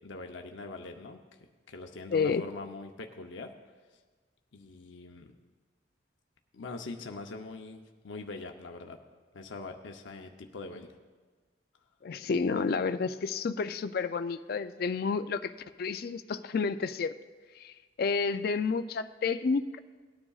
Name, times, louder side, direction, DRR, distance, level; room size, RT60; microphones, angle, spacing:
voice 1, 0.0-1.4 1.7-3.5 4.5-5.3 6.5-9.0 9.3-11.0, left 3 dB, 85° left, 4 dB, 0.7 m, -43 dB
voice 2, 2.1-2.4 12.0-15.5 15.8-17.1 17.6-19.8, left 5 dB, 55° left, 11 dB, 0.4 m, -30 dB
18.5 x 9.8 x 2.4 m, 1.4 s
head